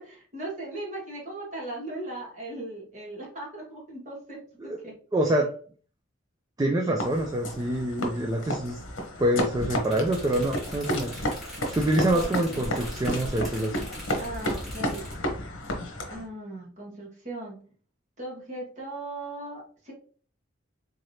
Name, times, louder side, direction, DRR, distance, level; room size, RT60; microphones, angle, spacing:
voice 1, 0.0-4.9 12.1-12.3 14.2-15.0 16.1-17.6 18.2-19.9, right 2 dB, 35° right, -4 dB, 1.6 m, -38 dB
voice 2, 5.1-5.5 6.6-8.8 9.2-11.2 11.7-13.9, right 1 dB, 20° right, 2 dB, 0.3 m, -26 dB
sound 1, 7.0-16.3, equal, 75° left, 0.9 m, -32 dB
sound 2, 9.6-15.2, equal, ahead, 1.7 m, -42 dB
3.7 x 3.3 x 2.7 m, 0.43 s
head